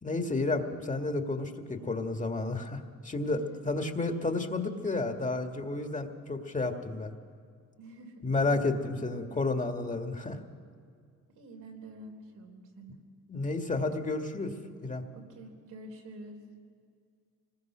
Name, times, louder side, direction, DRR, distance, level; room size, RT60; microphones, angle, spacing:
voice 1, 0.0-7.1 8.2-10.4 13.3-14.5 14.8-15.0, left 3 dB, 25° left, 5 dB, 1.9 m, -31 dB
voice 2, 3.2-3.6 7.8-9.3 11.3-13.0 15.1-16.4, right 1 dB, 85° right, 1 dB, 4.0 m, -48 dB
25.0 x 20.5 x 6.1 m, 2.2 s
cardioid pair, 90°, 30 cm